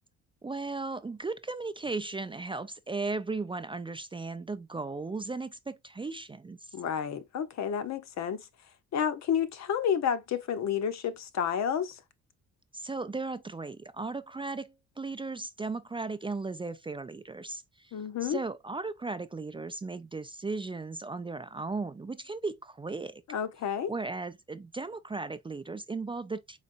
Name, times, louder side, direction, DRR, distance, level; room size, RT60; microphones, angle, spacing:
voice 1, 0.4-6.8 12.7-23.2 23.9-26.6, right 3 dB, 15° right, 0.4 m, -36 dB
voice 2, 6.7-8.5 8.9-12.0 17.9-18.4 23.3-23.9, left 8 dB, 60° left, 0.8 m, -30 dB
4.2 x 4.0 x 2.5 m
cardioid pair, 90°, 30 cm